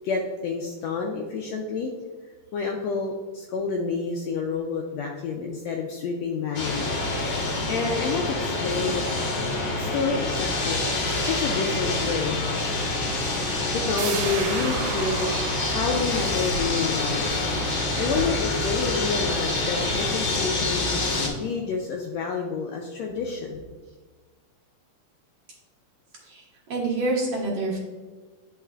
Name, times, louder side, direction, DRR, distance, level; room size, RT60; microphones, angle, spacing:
voice 1, 0.0-1.9 2.5-6.9 7.7-9.0 9.8-10.9 11.2-12.4 13.7-15.4 15.7-17.2 18.0-20.9 21.4-23.6, left 5 dB, 90° left, 1 dB, 1.5 m, -29 dB
sound 1, 6.5-21.3, left 2 dB, 55° left, 1.5 m, -27 dB
sound 2, 12.4-18.8, right 2 dB, 75° right, 2.3 m, -41 dB
sound 3, 14.0-19.5 19.8-19.9, right 8 dB, 90° right, 2.2 m, -36 dB
voice 2, 26.2-27.8, right 2 dB, 55° right, -4 dB, 2.1 m, -27 dB
10.5 x 4.6 x 2.4 m, 1.4 s
omnidirectional pair, 3.6 m